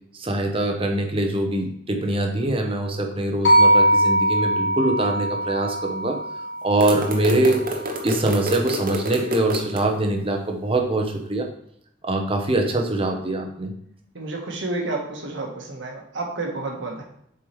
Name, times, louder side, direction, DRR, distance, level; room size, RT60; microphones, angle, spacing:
voice 1, 0.1-6.2 6.6-7.6 8.0-11.5 12.0-13.7, right 2 dB, 30° right, 3 dB, 0.9 m, -23 dB
sound 1, 3.4-7.7, right 1 dB, 85° left, 1.3 m, -21 dB
sound 2, 6.8-9.8, equal, 45° right, 1.0 m, -29 dB
voice 2, 14.1-17.0, right 2 dB, 85° right, 1 dB, 1.5 m, -30 dB
7.3 x 4.7 x 3.2 m, 0.71 s
head